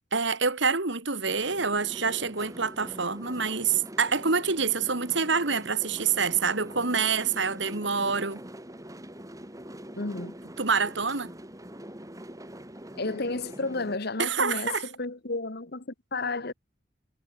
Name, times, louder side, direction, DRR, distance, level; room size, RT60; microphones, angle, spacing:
voice 1, 0.1-8.4 10.6-11.3 14.2-14.8, right 5 dB, 65° right, 2.4 m, -26 dB
sound 1, 1.3-14.0, right 1 dB, 15° right, 4.3 m, -44 dB
voice 2, 9.9-10.3 13.0-16.5, left 3 dB, 55° left, 1.6 m, -32 dB
head